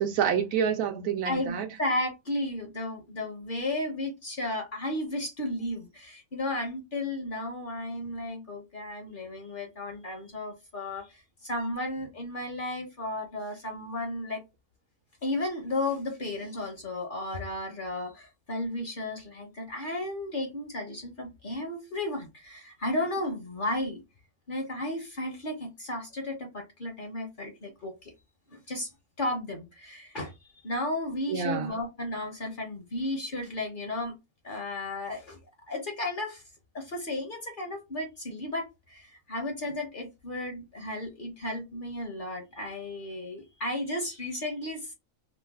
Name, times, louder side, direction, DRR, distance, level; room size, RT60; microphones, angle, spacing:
voice 1, 0.0-1.7 31.3-31.7, right 8 dB, 80° right, 1.1 m, -28 dB
voice 2, 1.2-14.4 15.2-24.0 24.5-28.1 28.5-28.9 29.2-30.3 30.6-34.1 34.4-35.4 35.7-36.4 36.7-44.9, left 1 dB, 45° left, 0.8 m, -34 dB
3.1 x 2.1 x 3.4 m
omnidirectional pair, 1.5 m